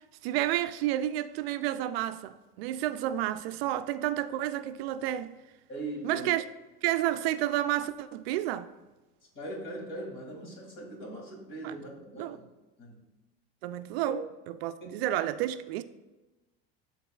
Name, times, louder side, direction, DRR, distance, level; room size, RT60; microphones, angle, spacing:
voice 1, 0.2-5.4 6.0-6.4 6.8-8.7 11.6-11.7 12.2-12.4 13.6-14.2 14.6-15.8, right 13 dB, 85° right, 0.5 m, -30 dB
voice 2, 5.7-6.3 9.3-12.5 12.8-13.0 14.0-14.1 14.8-14.9, right 1 dB, 40° left, 2.3 m, -40 dB
12.0 x 4.0 x 2.3 m
supercardioid pair, 130°, 29 cm